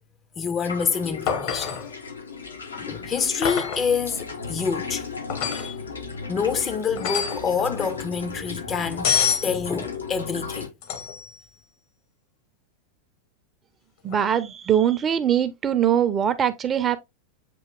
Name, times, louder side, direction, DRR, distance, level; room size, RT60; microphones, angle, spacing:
voice 1, 0.4-1.9 2.8-5.0 5.5-5.8 6.3-9.1 9.4-10.7, left 6 dB, 25° left, 0.5 m, -27 dB
sound 1, 0.6-10.7, left 5 dB, 75° left, 0.8 m, -35 dB
sound 2, 1.3-1.9 3.4-3.9 5.3-5.7 7.0-7.5 9.0-9.5 10.8-11.3 14.1-14.2, left 7 dB, 45° left, 0.9 m, -26 dB
voice 2, 14.0-17.0, right 9 dB, 25° right, 0.5 m, -22 dB
7.6 x 2.8 x 2.3 m
figure-of-eight pair, 90°, 0 cm